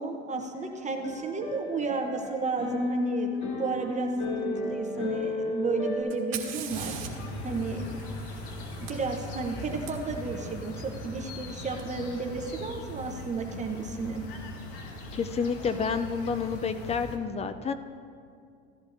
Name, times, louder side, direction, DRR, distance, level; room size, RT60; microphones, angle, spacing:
voice 1, 0.0-4.1 4.4-7.0 7.4-7.9 8.8-14.2, right 4 dB, 20° right, 4 dB, 0.8 m, -33 dB
sound 1, 0.5-6.0, left 3 dB, 50° left, 3.0 m, -33 dB
Fire, 6.1-9.9 11.8-11.9 12.7-13.1, right 9 dB, 50° right, 1.7 m, -42 dB
sound 2, 6.7-17.2, left 1 dB, 70° left, 1.4 m, -40 dB
voice 2, 15.1-17.7, left 5 dB, 20° left, 11 dB, 0.4 m, -29 dB
15.0 x 11.0 x 2.6 m, 2.3 s
supercardioid pair, 105°, 33 cm